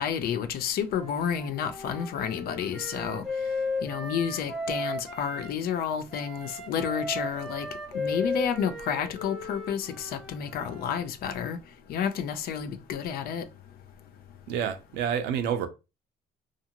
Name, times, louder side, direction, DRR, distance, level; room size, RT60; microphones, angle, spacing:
voice 1, 0.0-3.2 3.8-7.7 7.9-11.6 11.9-13.5, left 8 dB, 65° left, 0.5 m, -30 dB
Wind instrument woodwind instrument, 0.9-5.5 6.1-11.0, left 2 dB, ahead, 0.9 m, -35 dB
voice 2, 14.5-15.7, right 8 dB, 80° right, 0.6 m, -28 dB
2.5 x 2.5 x 2.8 m
cardioid pair, 110°, 17 cm